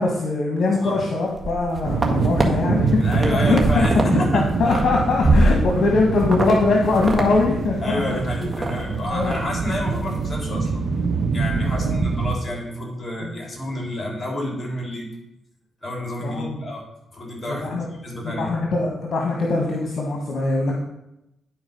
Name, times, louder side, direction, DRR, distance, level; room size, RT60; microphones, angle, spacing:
voice 1, 0.0-3.0 3.4-8.0 9.1-9.4 11.8-12.0 13.2-13.3 16.2-16.6 17.5-17.9 18.2-20.7, left 3 dB, 60° left, 0 dB, 1.5 m, -22 dB
sound 1, 1.3-2.5 2.9-4.1 4.4-5.9 6.3-6.5 6.8-7.3 7.6-7.7 8.1-8.7 9.1-9.4 9.7-10.0, right 2 dB, 30° right, 1.7 m, -23 dB
sound 2, 1.8-12.3, right 4 dB, 65° right, 1.0 m, -24 dB
voice 2, 3.0-4.8 5.2-5.6 7.8-10.8 11.3-15.1 15.8-16.8 17.1-18.5, left 1 dB, 30° left, -1 dB, 3.7 m, -29 dB
10.5 x 4.6 x 5.3 m, 0.86 s
supercardioid pair, 60°, 0 cm